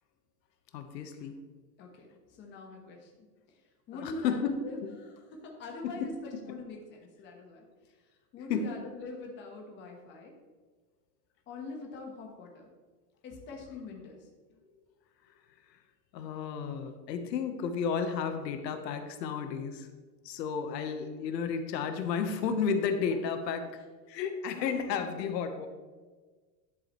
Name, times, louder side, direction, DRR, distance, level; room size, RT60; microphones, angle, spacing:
voice 1, 0.7-1.4 3.9-4.9 5.8-6.1 8.5-8.7 15.7-15.8 16.1-19.9 20.2-23.7 24.1-25.7, left 6 dB, 85° left, 7 dB, 1.2 m, -32 dB
voice 2, 1.8-3.6 3.9-7.7 8.3-10.3 11.5-12.7 13.2-14.7 24.5-25.3, left 3 dB, 20° left, 1 dB, 1.2 m, -44 dB
10.5 x 7.6 x 3.1 m, 1.4 s
supercardioid pair, 165°, 49 cm